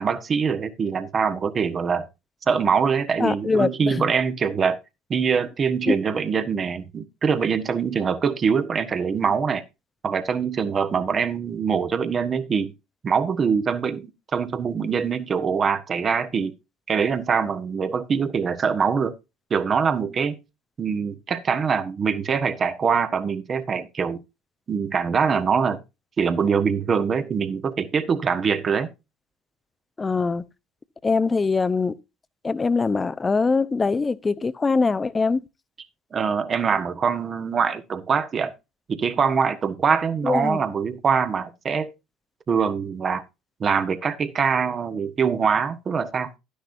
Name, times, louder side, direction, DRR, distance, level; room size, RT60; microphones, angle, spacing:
voice 1, 0.0-2.1 2.5-4.8 5.1-9.6 10.0-12.7 13.0-16.5 16.9-19.1 19.5-20.4 20.8-24.2 24.7-25.8 26.2-28.9 36.1-38.5 38.9-41.9 42.5-43.2 43.6-46.3, right 6 dB, 35° right, 1.3 m, -23 dB
voice 2, 3.2-4.1 5.9-6.0 30.0-30.4 31.0-31.9 32.4-35.4 40.2-40.6, left 4 dB, 25° left, 0.7 m, -22 dB
11.5 x 10.0 x 2.6 m
hypercardioid pair, 65°, 0 cm